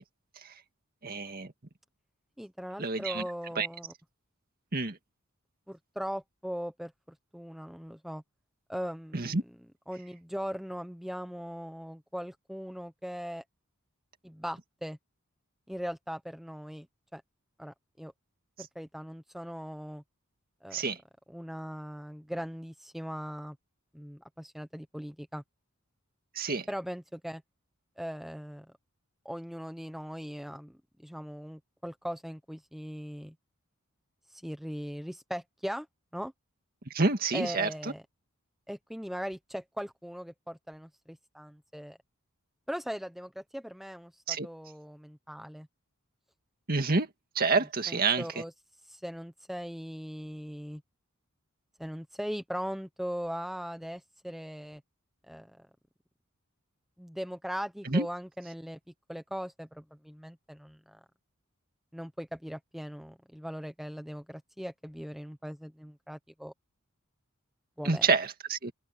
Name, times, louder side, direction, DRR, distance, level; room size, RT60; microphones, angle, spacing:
voice 1, 1.0-1.5 2.8-3.2 3.6-3.7 4.7-5.0 9.1-9.4 20.7-21.0 26.4-26.7 36.9-37.7 44.3-44.5 46.7-47.1 47.4-48.4 57.9-58.1 67.8-68.7, right 4 dB, 45° right, 2.0 m, -28 dB
voice 2, 2.4-3.9 5.7-6.9 7.3-8.2 8.7-9.4 9.9-13.4 14.2-15.0 15.7-16.9 17.1-17.2 17.6-18.1 18.6-20.0 20.6-20.8 21.3-23.6 23.9-25.4 26.7-27.4 28.0-28.7 29.2-33.3 34.3-35.9 36.1-36.3 37.3-38.0 38.7-42.0 42.7-45.7 47.6-48.5 48.9-50.8 51.8-54.8 55.3-55.5 57.0-58.8 59.1-61.0 61.9-66.5 67.8-68.1, equal, ahead, 1.0 m, -39 dB
head